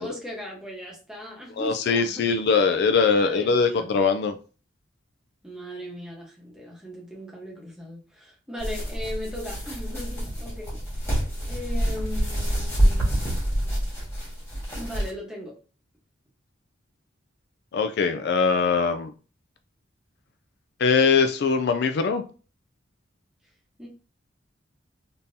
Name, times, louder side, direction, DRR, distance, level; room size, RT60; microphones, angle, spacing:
voice 1, 0.0-2.4 3.2-3.9 5.4-10.8 11.5-13.2 14.7-15.5 23.8-23.9, left 1 dB, 5° right, 1.0 m, -38 dB
voice 2, 1.6-4.4 17.7-19.1 20.8-22.2, left 5 dB, 55° left, 0.3 m, -22 dB
sound 1, 8.6-15.1, equal, 15° left, 1.7 m, -27 dB
3.6 x 2.8 x 2.6 m
head